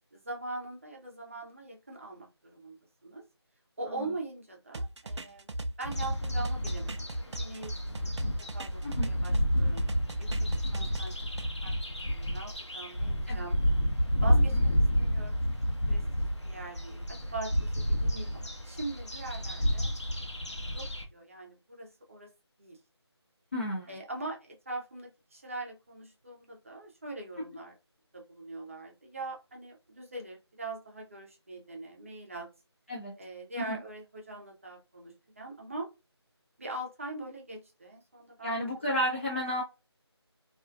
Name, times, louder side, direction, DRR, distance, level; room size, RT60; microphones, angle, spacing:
voice 1, 0.1-2.8 3.0-3.2 3.8-7.7 8.0-8.1 8.5-9.9 10.2-11.1 11.6-11.7 12.1-13.6 14.2-15.6 15.9-19.9 20.7-22.3 22.6-22.8 23.9-27.7 28.1-32.5 33.2-35.9 36.6-38.9, right 2 dB, 30° right, 0 dB, 0.6 m, -42 dB
sound 1, 4.7-9.5 9.8-11.5, right 1 dB, 80° right, 0.4 m, -37 dB
sound 2, 5.8-21.0, equal, 90° left, 0.8 m, -30 dB
voice 2, 23.5-23.9 32.9-33.1 33.7-33.8 38.4-39.6, equal, 25° left, -5 dB, 0.5 m, -31 dB
2.4 x 2.2 x 2.5 m, 0.28 s
figure-of-eight pair, 165°, 14 cm